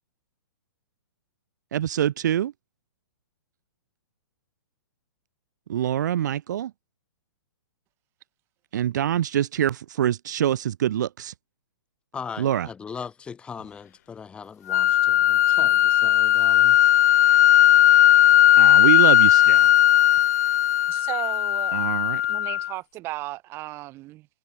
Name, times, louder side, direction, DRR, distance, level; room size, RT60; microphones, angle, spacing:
voice 1, 1.7-2.5 5.7-6.7 8.7-11.3 12.4-12.7 18.6-19.7 21.7-22.2, right 11 dB, 50° right, 3.0 m, -25 dB
voice 2, 12.1-16.9, left 6 dB, 10° left, 4.9 m, -39 dB
sound 1, 14.7-22.7, left 12 dB, 45° left, 0.7 m, -17 dB
voice 3, 20.9-21.8 22.3-24.3, right 18 dB, 20° right, 4.0 m, -35 dB
hypercardioid pair, 170°, 12 cm